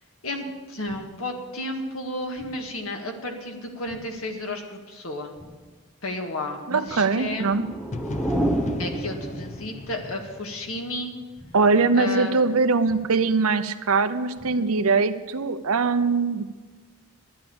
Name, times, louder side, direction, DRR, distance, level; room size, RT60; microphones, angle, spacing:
voice 1, 0.2-5.3 6.0-7.6 8.8-11.1 11.9-12.4, left 1 dB, 75° left, 3 dB, 1.8 m, -32 dB
sound 1, 0.9-1.3 2.4-2.8 3.9-4.3 5.4-5.8 6.9-7.3 8.4-8.8 9.9-10.3 11.4-11.8 12.9-13.3 14.4-14.8, equal, 15° right, 3.2 m, -50 dB
voice 2, 6.7-7.6 11.5-16.5, right 4 dB, 80° right, 10 dB, 0.8 m, -22 dB
sound 2, 7.2-9.9, right 1 dB, 5° left, 0.8 m, -28 dB
sound 3, 7.9-11.8, left 2 dB, 35° left, 0.4 m, -37 dB
12.0 x 10.0 x 7.0 m, 1.3 s
head